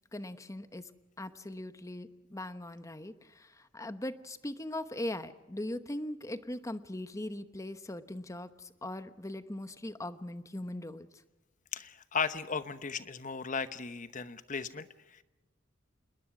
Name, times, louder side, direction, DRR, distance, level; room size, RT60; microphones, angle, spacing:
voice 1, 0.1-0.9 1.2-11.1, left 1 dB, 15° left, 11 dB, 1.0 m, -40 dB
voice 2, 11.7-15.2, left 5 dB, 40° left, 12 dB, 1.0 m, -36 dB
27.0 x 21.0 x 6.1 m, 1.1 s
head